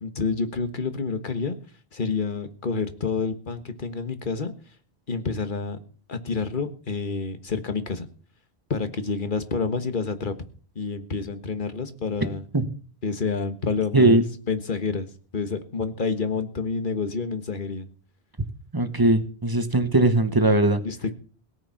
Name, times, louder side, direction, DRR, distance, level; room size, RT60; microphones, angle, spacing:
voice 1, 0.0-1.6 1.9-4.5 5.1-5.8 6.1-8.1 8.7-10.3 10.7-12.4 13.0-15.1 15.3-17.9 20.8-21.1, left 4 dB, 50° left, 10 dB, 1.6 m, -28 dB
voice 2, 13.9-14.2 18.7-20.8, right 2 dB, 20° right, 9 dB, 1.4 m, -19 dB
17.5 x 9.0 x 5.7 m, 0.41 s
omnidirectional pair, 1.1 m